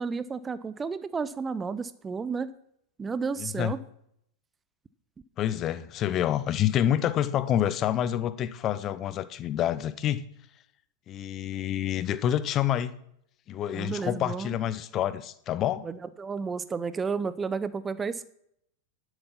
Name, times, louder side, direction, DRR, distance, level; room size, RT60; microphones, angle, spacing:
voice 1, 0.0-2.5 3.0-3.8 13.7-14.6 15.8-18.2, right 5 dB, 15° right, 15 dB, 0.6 m, -32 dB
voice 2, 3.4-3.7 5.4-10.2 11.1-13.0 13.5-15.9, left 11 dB, 30° left, 14 dB, 0.7 m, -28 dB
11.0 x 8.1 x 5.8 m, 0.71 s
figure-of-eight pair, 90°, 0 cm